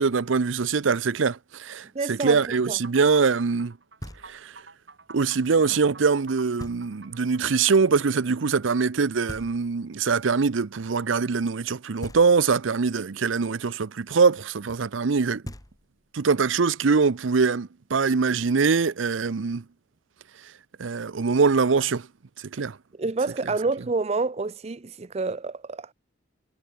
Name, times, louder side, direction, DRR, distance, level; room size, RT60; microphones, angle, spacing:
voice 1, 0.0-3.7 4.2-4.5 5.1-15.4 16.1-19.6 20.8-22.1 22.5-22.8, right 5 dB, 90° right, 0.6 m, -23 dB
voice 2, 1.9-2.4 2.7-2.8 22.9-25.9, right 3 dB, 35° right, 0.5 m, -28 dB
sound 1, 2.3-7.4, right 4 dB, 65° right, 3.2 m, -48 dB
Knock, 4.0-4.7 6.6-7.2 9.3-10.1 12.0-12.8 15.1-15.2 15.4-16.2, equal, 20° left, 2.3 m, -42 dB
head